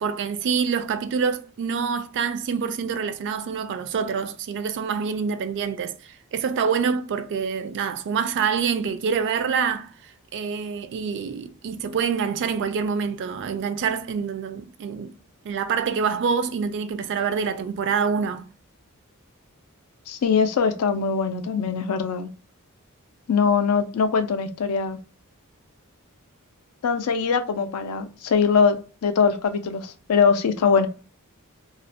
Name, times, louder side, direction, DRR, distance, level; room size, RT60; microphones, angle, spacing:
voice 1, 0.0-5.9 6.3-9.9 10.3-15.1 15.4-18.5, right 6 dB, 55° right, 0.3 m, -26 dB
voice 2, 20.1-22.3 23.3-25.0 26.8-30.9, left 5 dB, 75° left, 0.4 m, -22 dB
2.4 x 2.0 x 2.6 m
head